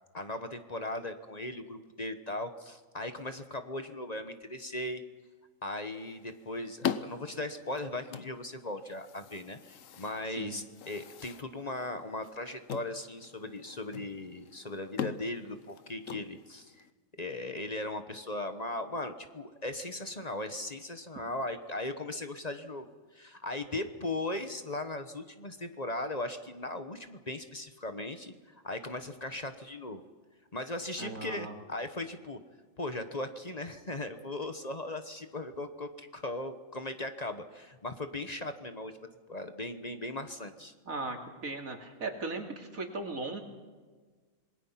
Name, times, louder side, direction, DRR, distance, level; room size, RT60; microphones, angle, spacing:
voice 1, 0.1-5.0 5.6-16.9 17.2-30.0 30.5-32.4 32.8-40.7, left 2 dB, 30° left, 8 dB, 1.2 m, -38 dB
sound 1, 5.8-16.9, left 8 dB, 75° left, 1.2 m, -42 dB
voice 2, 10.3-10.6 31.0-31.5 40.8-41.2 41.4-43.4, right 3 dB, 90° right, 3 dB, 3.0 m, -37 dB
27.0 x 21.0 x 5.8 m, 1.4 s
omnidirectional pair, 1.4 m